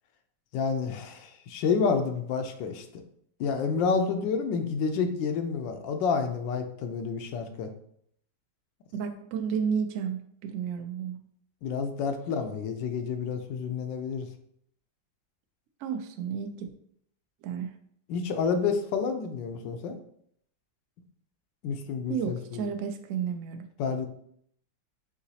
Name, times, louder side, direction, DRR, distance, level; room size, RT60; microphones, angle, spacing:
voice 1, 0.5-3.0 3.4-7.7 11.6-14.3 18.1-20.0 21.6-22.7 23.8-24.1, left 5 dB, 85° left, 7 dB, 1.3 m, -29 dB
voice 2, 8.9-11.2 15.8-16.7 17.4-17.7 22.1-23.7, right 7 dB, 90° right, 6 dB, 0.7 m, -32 dB
4.9 x 3.9 x 2.8 m, 0.67 s
omnidirectional pair, 2.0 m